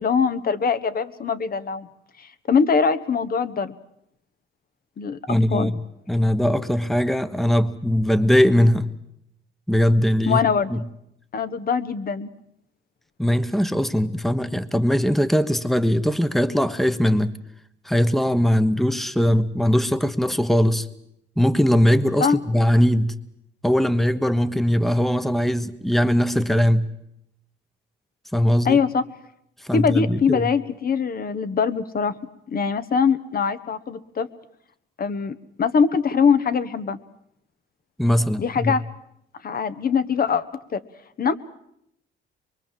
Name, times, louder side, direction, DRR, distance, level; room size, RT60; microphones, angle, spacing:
voice 1, 0.0-1.9 2.2-3.8 5.0-5.2 5.5-5.7 10.3-10.7 11.3-12.3 22.2-22.4 28.6-29.0 29.7-32.1 32.5-34.3 35.0-37.0 38.4-38.8 39.4-40.4 40.7-40.8 41.2-41.3, left 6 dB, 50° left, 13 dB, 1.4 m, -22 dB
voice 2, 5.3-5.8 6.1-8.9 9.7-10.4 10.7-10.8 13.2-17.3 17.8-20.9 21.4-23.1 23.6-26.9 28.3-28.8 29.6-30.5 38.0-38.7, equal, ahead, 12 dB, 1.2 m, -20 dB
24.0 x 23.0 x 7.6 m, 0.78 s
cardioid pair, 90°, 20 cm